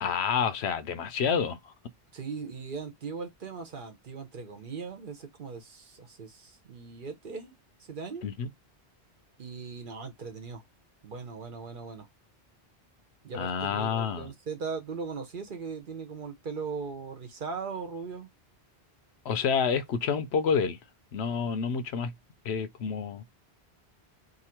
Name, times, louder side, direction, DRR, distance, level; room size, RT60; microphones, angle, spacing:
voice 1, 0.0-1.7 8.2-8.5 13.3-14.3 19.2-20.8 21.1-22.1 22.4-23.2, left 6 dB, 80° left, 0.9 m, -28 dB
voice 2, 2.1-8.3 9.4-10.6 11.0-12.1 13.2-18.3, right 5 dB, 55° right, 0.9 m, -39 dB
2.8 x 2.5 x 4.3 m
omnidirectional pair, 1.1 m